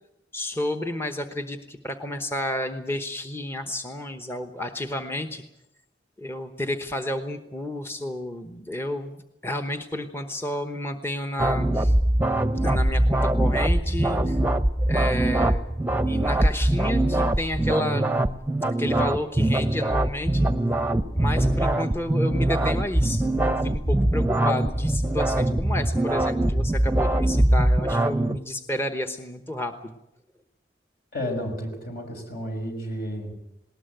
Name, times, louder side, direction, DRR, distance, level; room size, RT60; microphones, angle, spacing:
voice 1, 0.3-5.4 6.2-12.0 12.6-14.4 14.8-15.6 16.0-18.0 18.8-20.5 21.1-30.0, left 1 dB, 15° left, 7 dB, 1.0 m, -31 dB
sound 1, 11.4-28.4, right 1 dB, 10° right, 0.8 m, -22 dB
voice 2, 31.1-33.3, equal, 60° left, 4 dB, 5.9 m, -32 dB
19.5 x 19.0 x 9.1 m, 0.85 s
head